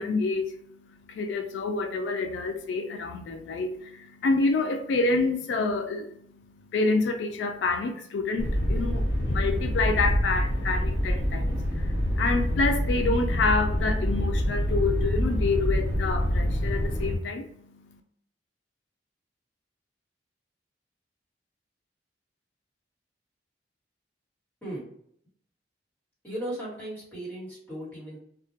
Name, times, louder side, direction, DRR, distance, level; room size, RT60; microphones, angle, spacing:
voice 1, 0.0-18.0, left 3 dB, 80° left, 0.3 m, -28 dB
sound 1, 8.4-17.2, equal, 65° left, 0.7 m, -26 dB
voice 2, 26.2-28.2, right 1 dB, 10° left, 1.3 m, -36 dB
2.2 x 2.1 x 2.7 m
head